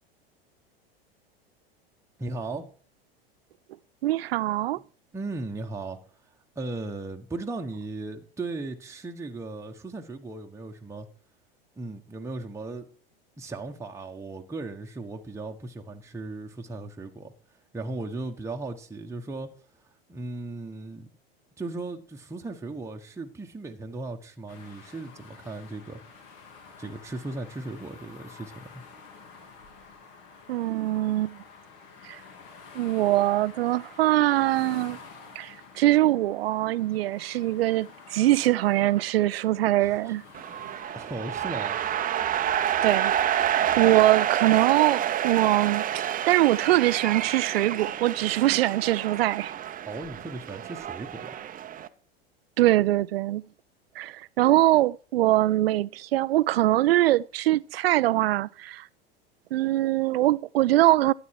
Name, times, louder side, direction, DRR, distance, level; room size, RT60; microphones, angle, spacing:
voice 1, 2.2-2.7 5.1-6.0 6.5-11.1 11.8-12.9 13.4-17.3 17.7-19.5 20.1-21.1 21.6-26.0 26.8-28.8 39.8-40.1 40.6-41.8 49.8-51.4, right 2 dB, 10° right, 1.3 m, -37 dB
voice 2, 4.0-4.8 30.5-31.4 32.0-32.2 32.7-35.0 35.4-40.2 42.8-49.5 52.6-53.4 54.0-58.9 59.5-61.1, right 15 dB, 75° right, 0.5 m, -23 dB
sound 1, 24.5-42.9, left 5 dB, 55° left, 3.4 m, -49 dB
sound 2, 40.3-51.9, right 10 dB, 30° right, 0.9 m, -28 dB
12.5 x 8.7 x 4.8 m
hypercardioid pair, 90°, 30 cm